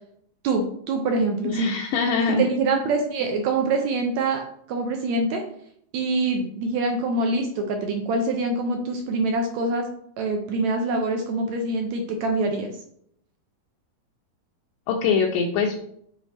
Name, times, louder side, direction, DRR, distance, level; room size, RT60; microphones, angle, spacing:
voice 1, 0.4-1.7 2.4-4.4 4.7-5.4 5.9-9.9 10.2-12.7, right 3 dB, 75° right, 3 dB, 1.7 m, -25 dB
voice 2, 1.4-2.4 14.9-15.8, left 5 dB, 80° left, -1 dB, 2.3 m, -23 dB
7.3 x 4.1 x 3.3 m, 0.68 s
omnidirectional pair, 3.9 m